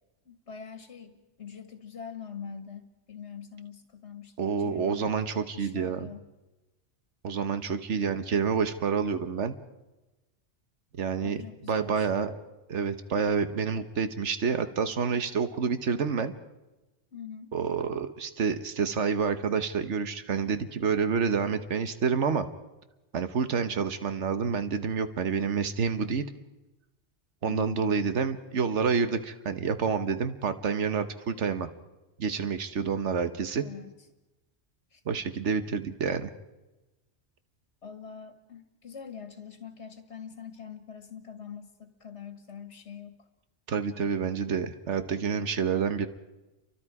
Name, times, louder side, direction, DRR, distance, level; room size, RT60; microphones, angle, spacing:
voice 1, 0.3-6.2 11.2-12.1 17.1-17.5 27.4-27.9 33.6-33.9 34.9-35.0 37.8-43.3, left 7 dB, 70° left, 7 dB, 1.8 m, -44 dB
voice 2, 4.4-6.1 7.2-9.5 11.0-11.4 11.7-12.4 12.7-16.3 17.5-22.5 23.1-26.2 27.4-31.7 32.2-33.6 35.1-36.3 43.7-46.1, right 6 dB, 90° right, 10 dB, 1.4 m, -28 dB
30.0 x 24.0 x 4.8 m, 1.1 s
omnidirectional pair, 1.2 m